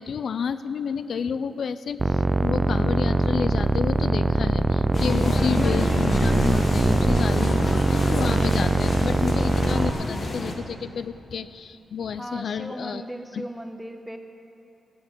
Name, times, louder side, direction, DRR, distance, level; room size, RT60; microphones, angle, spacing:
voice 1, 0.0-13.0 13.3-13.4, left 6 dB, 70° left, 13 dB, 0.3 m, -30 dB
sound 1, 2.0-9.9, right 2 dB, 20° right, 0.4 m, -22 dB
sound 2, 4.9-10.5, left 2 dB, 45° left, 1.4 m, -30 dB
voice 2, 12.2-14.2, right 1 dB, 5° right, 6 dB, 0.9 m, -37 dB
11.0 x 9.4 x 6.6 m, 2.9 s
cardioid pair, 105°, 0 cm